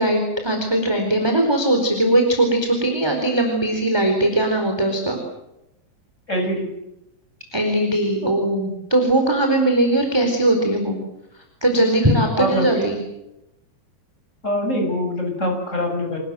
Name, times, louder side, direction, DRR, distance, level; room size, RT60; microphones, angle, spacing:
voice 1, 0.0-5.2 7.5-11.0 11.6-13.0, right 1 dB, 5° right, 2 dB, 3.7 m, -19 dB
voice 2, 6.3-6.7 11.8-11.9 12.4-12.8 14.4-16.2, left 1 dB, 15° left, 2 dB, 7.2 m, -23 dB
28.5 x 20.0 x 7.8 m, 0.87 s
omnidirectional pair, 5.3 m